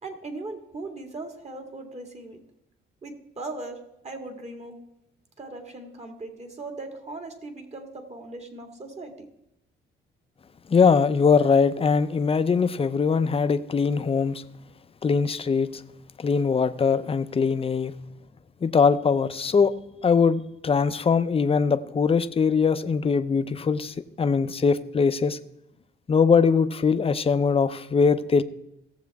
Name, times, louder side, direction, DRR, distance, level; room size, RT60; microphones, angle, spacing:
voice 1, 0.0-2.4 3.0-4.8 5.4-9.3, right 2 dB, 35° right, 5 dB, 2.1 m, -39 dB
voice 2, 10.7-14.4 15.0-15.8 16.2-17.9 18.6-19.7 20.0-25.4 26.1-28.4, left 5 dB, 30° left, 12 dB, 0.6 m, -21 dB
17.0 x 7.3 x 3.5 m, 0.86 s
cardioid pair, 90°, 20 cm